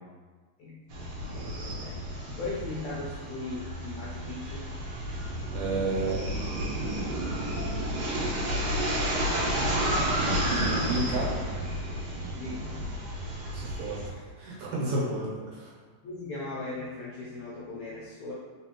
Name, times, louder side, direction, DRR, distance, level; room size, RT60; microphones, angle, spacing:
sound 1, 0.9-14.1, equal, 90° right, 1.4 m, -31 dB
voice 1, 1.2-2.0 2.4-4.6 12.3-12.8 16.0-18.3, left 2 dB, 80° left, -6 dB, 1.6 m, -38 dB
voice 2, 5.5-6.3 9.4-11.4 13.5-15.7, right 2 dB, 70° right, -5 dB, 2.3 m, -32 dB
4.3 x 4.1 x 3.0 m, 1.5 s
omnidirectional pair, 4.0 m